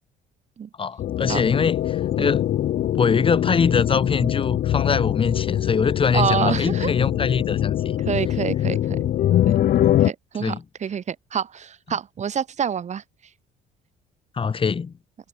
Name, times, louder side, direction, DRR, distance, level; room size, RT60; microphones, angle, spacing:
voice 1, 0.8-2.5 2.9-8.0 10.4-10.6 14.4-14.9, left 5 dB, 30° left, 3.8 m, -23 dB
sound 1, 1.0-10.1, left 12 dB, 60° left, 1.3 m, -23 dB
voice 2, 6.1-6.9 8.0-9.1 9.5-9.6 10.0-13.0, right 8 dB, 45° right, 4.1 m, -27 dB
cardioid pair, 110°, 17 cm